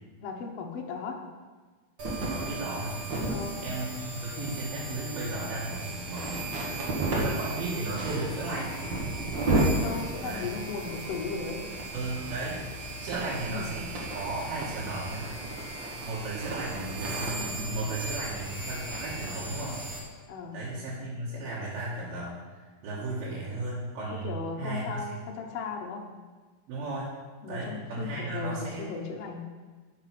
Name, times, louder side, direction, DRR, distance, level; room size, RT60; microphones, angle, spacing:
voice 1, 0.2-1.3 3.3-3.6 9.8-11.8 13.5-13.9 20.3-20.6 24.2-26.1 27.4-29.5, left 4 dB, 75° left, 1 dB, 1.4 m, -36 dB
sound 1, 2.0-20.0, right 2 dB, 50° right, 1.4 m, -33 dB
voice 2, 2.3-3.0 3.6-6.6 7.1-8.8 10.2-10.5 11.9-12.7 13.0-15.4 16.0-19.8 20.5-25.1 26.7-27.1 27.5-28.9, right 2 dB, 75° right, -8 dB, 3.4 m, -35 dB
8.9 x 6.8 x 6.0 m, 1.4 s
omnidirectional pair, 4.5 m